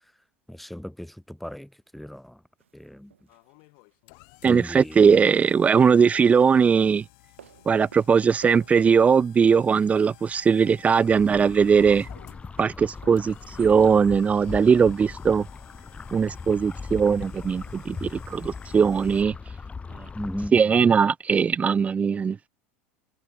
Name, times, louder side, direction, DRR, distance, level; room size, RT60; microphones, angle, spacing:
voice 1, 0.5-2.4 2.7-3.1 4.4-5.1 20.1-20.6, equal, ahead, 2.1 m, -36 dB
sound 1, 2.6-4.8 5.1-5.5 6.6-7.0 7.4-9.2 9.5-19.1, right 9 dB, 70° right, 3.0 m, -55 dB
sound 2, 3.3-19.2, left 40 dB or more, 50° left, 2.9 m, -54 dB
voice 2, 4.4-7.0 7.7-12.1 12.6-15.5 16.1-19.4 19.9-20.1 20.5-22.5, right 6 dB, 20° right, 0.6 m, -20 dB
sound 3, 11.0-20.5, left 4 dB, 15° left, 3.8 m, -39 dB
figure-of-eight pair, 75°, 7 cm